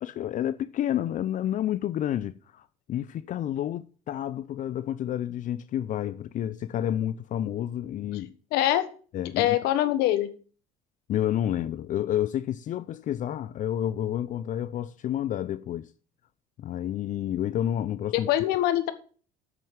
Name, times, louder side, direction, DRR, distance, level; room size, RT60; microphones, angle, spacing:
voice 1, 0.0-8.4 9.1-9.6 11.1-15.9 16.6-18.3, left 11 dB, 50° left, 0.5 m, -30 dB
voice 2, 8.5-8.9 9.4-10.3 18.1-18.9, left 13 dB, 75° left, 1.3 m, -23 dB
8.7 x 6.6 x 7.3 m
supercardioid pair, 75°, 17 cm